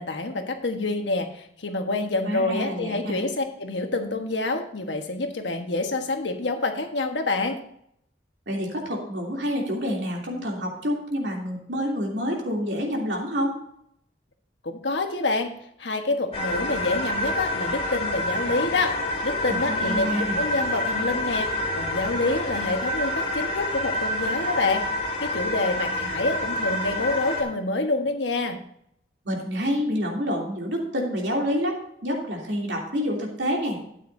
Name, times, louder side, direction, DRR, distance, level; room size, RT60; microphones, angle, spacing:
voice 1, 0.0-7.6 14.6-15.5 15.8-18.9 19.2-24.9 25.2-28.6, left 2 dB, 85° left, 5 dB, 1.3 m, -27 dB
voice 2, 2.3-3.2 8.5-13.5 19.5-20.4 29.2-33.8, equal, 80° right, -1 dB, 2.9 m, -28 dB
sound 1, 16.3-27.4, left 1 dB, 30° left, 1.8 m, -28 dB
12.5 x 9.1 x 2.7 m, 0.72 s
head